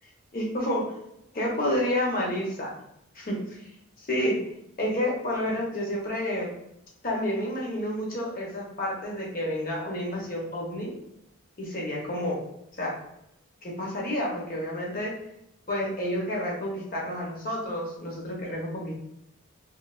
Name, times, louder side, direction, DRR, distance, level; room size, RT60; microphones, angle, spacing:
voice 1, 0.3-0.9 1.3-2.7 3.1-3.4 4.1-4.3 4.8-6.5 7.0-10.9 11.6-12.4 12.8-12.9 13.6-15.1 15.7-19.0, left 1 dB, 45° left, -2 dB, 0.8 m, -29 dB
3.1 x 2.8 x 2.3 m, 0.83 s
head